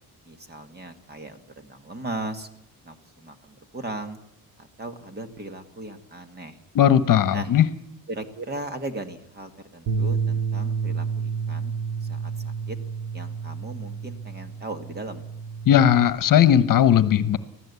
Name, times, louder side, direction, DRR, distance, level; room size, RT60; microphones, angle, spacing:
voice 1, 0.3-2.5 2.8-4.2 4.6-6.6 7.3-7.5 8.1-11.7 12.1-12.8 13.1-15.2, right 2 dB, 25° right, 8 dB, 1.8 m, -37 dB
voice 2, 6.7-7.7 15.7-17.4, left 10 dB, 60° left, 14 dB, 1.1 m, -17 dB
Bass guitar, 9.9-16.1, right 5 dB, 80° right, 2.6 m, -30 dB
24.5 x 16.0 x 8.3 m, 0.85 s
wide cardioid pair, 175°, 37 cm